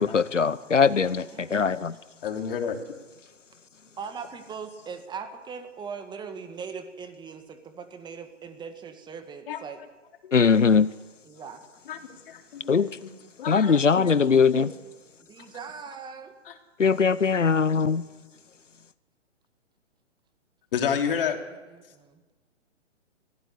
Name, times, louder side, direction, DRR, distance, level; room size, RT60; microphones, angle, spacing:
voice 1, 0.0-1.9 10.3-10.9 12.7-12.9 13.5-14.7 16.8-18.0, left 5 dB, 90° left, 18 dB, 0.9 m, -21 dB
voice 2, 1.2-1.7 4.0-9.8 11.2-11.6 15.3-16.3 21.7-22.2, right 6 dB, 10° right, 7 dB, 2.0 m, -40 dB
voice 3, 2.2-2.8 9.5-9.6 10.2-10.3 11.9-12.0 12.3-13.1 13.4-14.1 14.5-14.7 16.4-16.5 20.7-21.4, left 7 dB, 50° left, 5 dB, 3.3 m, -30 dB
24.0 x 16.5 x 9.8 m, 1.2 s
figure-of-eight pair, 125°, 36 cm